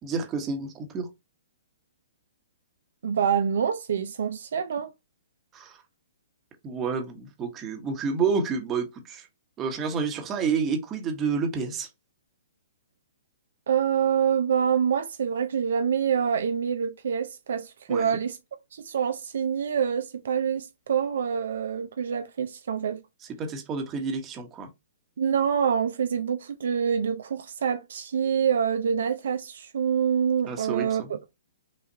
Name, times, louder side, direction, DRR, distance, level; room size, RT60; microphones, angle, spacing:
voice 1, 0.0-1.1 5.5-5.8 6.6-9.3 9.6-11.9 17.9-18.2 23.4-24.7 30.5-31.1, right 5 dB, 25° right, 1.1 m, -29 dB
voice 2, 3.0-4.9 13.7-18.4 18.7-23.0 25.2-31.2, right 7 dB, 70° right, 0.5 m, -26 dB
6.0 x 2.4 x 2.8 m
hypercardioid pair, 130°, 0 cm